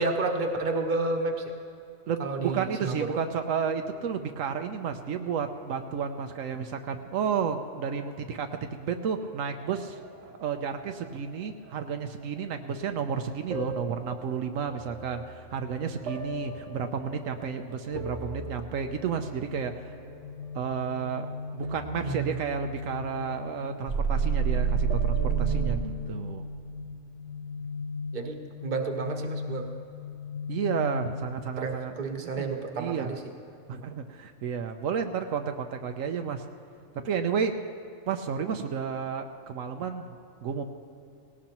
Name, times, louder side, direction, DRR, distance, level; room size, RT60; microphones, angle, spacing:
voice 1, 0.0-1.5 2.2-2.9 22.0-22.4 28.1-29.6 31.6-33.2, right 3 dB, 40° right, 3 dB, 1.2 m, -30 dB
voice 2, 2.1-10.0 10.4-19.9 20.5-21.3 21.5-25.8 26.1-26.5 30.5-33.1 33.7-36.4 36.9-37.5 38.1-40.6, right 7 dB, 80° right, 6 dB, 1.1 m, -32 dB
sound 1, 9.6-11.1 11.7-12.2 12.8-12.9 13.5-21.2 21.5-23.2 23.6-25.8, right 6 dB, 60° right, 1.3 m, -32 dB
sound 2, 18.8-31.5, left 4 dB, 70° left, 1.1 m, -38 dB
18.5 x 17.5 x 3.0 m, 2.5 s
omnidirectional pair, 1.4 m